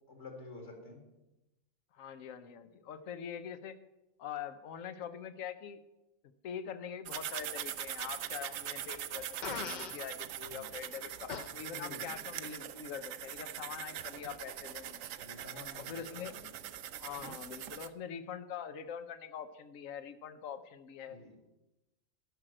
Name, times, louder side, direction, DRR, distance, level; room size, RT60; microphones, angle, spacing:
voice 1, 0.1-1.0 10.5-10.6 11.7-12.2 15.2-16.5 21.1-21.3, left 3 dB, 60° left, 2 dB, 2.5 m, -49 dB
voice 2, 1.9-3.8 4.2-5.8 6.4-15.0 15.7-16.3 17.0-21.2, left 8 dB, 90° left, 12 dB, 1.2 m, -44 dB
sound 1, 7.1-17.9, right 11 dB, 90° right, 1.0 m, -42 dB
Fart, 9.4-10.0 11.3-11.5, left 6 dB, 45° left, 0.7 m, -39 dB
11.0 x 6.3 x 8.7 m, 0.97 s
omnidirectional pair, 1.3 m